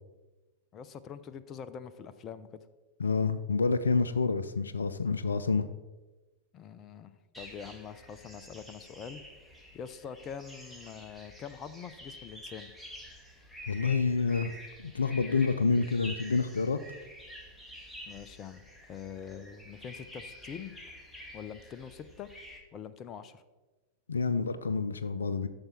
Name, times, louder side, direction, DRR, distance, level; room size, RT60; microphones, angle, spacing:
voice 1, 0.7-2.7 6.5-9.2 9.7-12.7 18.1-18.6 18.9-20.7 21.3-22.3 22.7-23.4, left 7 dB, 30° left, 13 dB, 0.6 m, -44 dB
voice 2, 3.0-5.7 13.7-14.5 14.8-16.8 24.1-25.5, left 4 dB, 75° left, 13 dB, 0.4 m, -28 dB
sound 1, 7.3-22.6, equal, 5° left, 1.8 m, -49 dB
12.5 x 7.0 x 4.3 m, 1.2 s
figure-of-eight pair, 90°, 0 cm